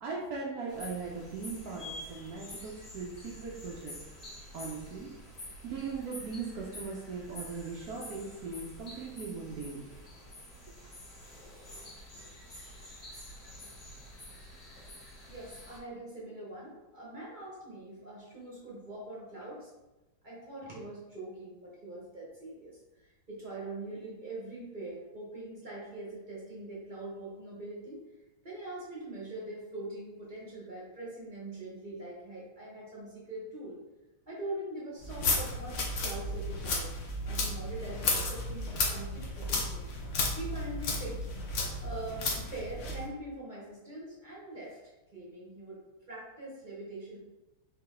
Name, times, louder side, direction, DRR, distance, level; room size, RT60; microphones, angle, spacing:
voice 1, 0.0-3.9 4.5-5.1 5.6-9.8, right 4 dB, 85° right, -2 dB, 0.8 m, -39 dB
sound 1, 0.7-15.8, left 1 dB, 35° left, 1.2 m, -48 dB
voice 2, 15.3-19.7 20.2-28.0 28.4-33.8 34.3-36.9 37.2-39.8 40.4-45.8 46.1-47.2, right 2 dB, 45° right, -6 dB, 0.6 m, -43 dB
sound 2, 35.0-43.0, left 2 dB, 75° left, 0.6 m, -33 dB
4.8 x 2.9 x 3.7 m, 1.1 s
omnidirectional pair, 2.3 m